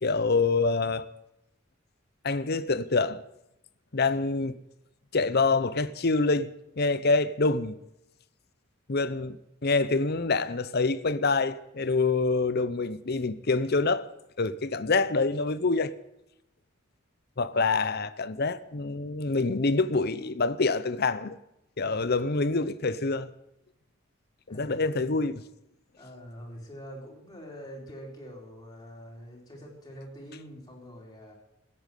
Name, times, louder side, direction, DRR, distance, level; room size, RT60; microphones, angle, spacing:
voice 1, 0.0-1.1 2.2-3.2 3.9-4.6 5.1-7.8 8.9-9.4 9.6-14.1 14.4-15.9 17.4-21.4 21.8-23.3 24.5-25.4, left 3 dB, 50° left, 0.8 m, -26 dB
voice 2, 17.5-17.9 24.5-25.1 26.0-31.4, equal, 20° left, 4.3 m, -45 dB
16.0 x 8.8 x 9.2 m
head